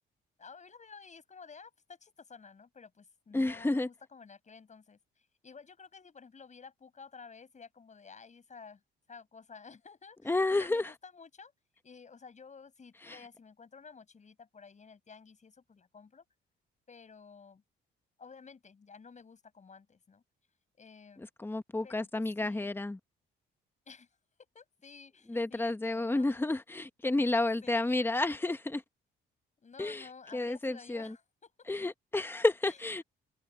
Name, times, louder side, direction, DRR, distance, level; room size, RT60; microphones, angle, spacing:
voice 1, 0.4-8.8 9.1-11.5 11.8-16.2 16.9-17.6 18.2-20.2 20.8-21.3 21.8-22.7 23.9-24.1 24.5-26.4 27.6-28.0 29.6-31.5 32.6-32.8, left 5 dB, 35° left, 6.6 m, -53 dB
voice 2, 3.3-3.9 10.3-10.9 13.1-13.2 21.4-23.0 25.3-28.8 29.8-30.1 30.3-31.1 31.7-33.0, left 2 dB, 10° left, 1.1 m, -30 dB
cardioid pair, 90°, 20 cm